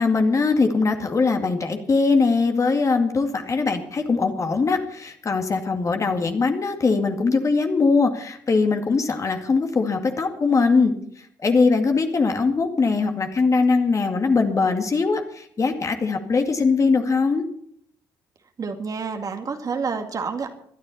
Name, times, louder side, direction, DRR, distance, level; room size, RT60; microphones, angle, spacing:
voice 1, 0.0-10.9 11.4-17.4, left 4 dB, 30° left, 5 dB, 2.2 m, -21 dB
voice 2, 18.6-20.5, right 5 dB, 35° right, 5 dB, 2.1 m, -28 dB
21.5 x 13.0 x 4.3 m, 0.67 s
figure-of-eight pair, 45°, 10 cm